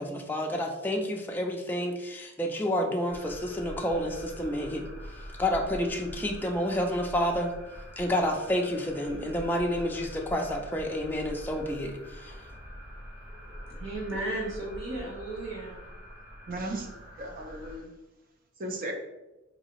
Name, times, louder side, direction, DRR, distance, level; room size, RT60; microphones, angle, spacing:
voice 1, 0.0-7.5 8.0-12.4, equal, 10° left, 1 dB, 0.3 m, -30 dB
sound 1, 3.1-17.8, equal, 10° right, 1.2 m, -44 dB
voice 2, 13.7-15.8, right 2 dB, 65° right, -2 dB, 0.9 m, -34 dB
voice 3, 16.5-17.9 18.6-18.9, right 1 dB, 45° right, 3 dB, 0.5 m, -36 dB
4.0 x 2.7 x 2.9 m, 1.0 s
head